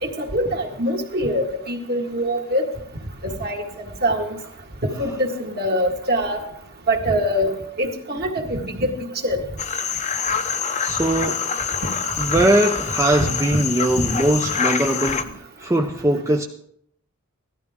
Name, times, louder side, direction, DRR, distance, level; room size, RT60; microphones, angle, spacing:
voice 1, 0.0-2.7 3.2-3.6 4.0-4.4 5.0-6.4 6.9-8.9 9.2-9.4 12.4-12.5 13.2-13.6 13.9-14.0, equal, 45° right, 1.9 m, -24 dB
sound 1, 9.6-15.2, left 6 dB, 35° left, 0.8 m, -26 dB
voice 2, 10.8-11.5 12.2-16.4, right 1 dB, 15° right, 0.6 m, -21 dB
16.5 x 12.5 x 3.7 m
head